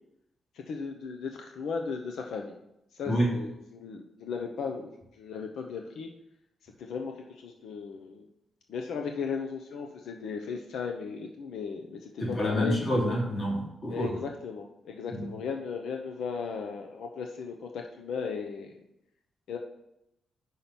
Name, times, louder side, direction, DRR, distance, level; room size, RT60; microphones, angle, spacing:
voice 1, 0.5-2.5 2.9-4.9 5.2-6.1 6.8-8.3 8.7-12.8 13.9-18.7 19.5-19.6, left 5 dB, 90° left, 3 dB, 0.8 m, -36 dB
voice 2, 12.2-14.1 15.1-15.3, equal, 35° left, -3 dB, 2.9 m, -27 dB
5.9 x 5.6 x 7.0 m, 0.85 s
wide cardioid pair, 135°, 0 cm